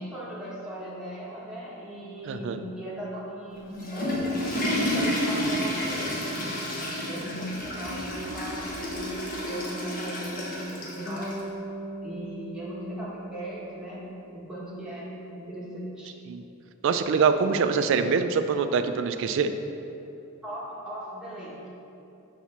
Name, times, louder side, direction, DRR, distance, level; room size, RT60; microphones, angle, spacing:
voice 1, 0.0-4.2 4.8-6.5 7.0-11.4 12.0-14.0 14.3-16.2 20.4-21.7, right 1 dB, 5° right, -8 dB, 1.2 m, -38 dB
voice 2, 2.3-2.6 16.3-16.4 16.8-19.5, right 5 dB, 60° right, 9 dB, 0.3 m, -24 dB
Water / Toilet flush, 3.6-11.4, left 1 dB, 40° left, 1.0 m, -30 dB
Bass guitar, 11.0-15.2, right 1 dB, 25° left, 0.7 m, -40 dB
5.8 x 3.1 x 5.7 m, 2.8 s
head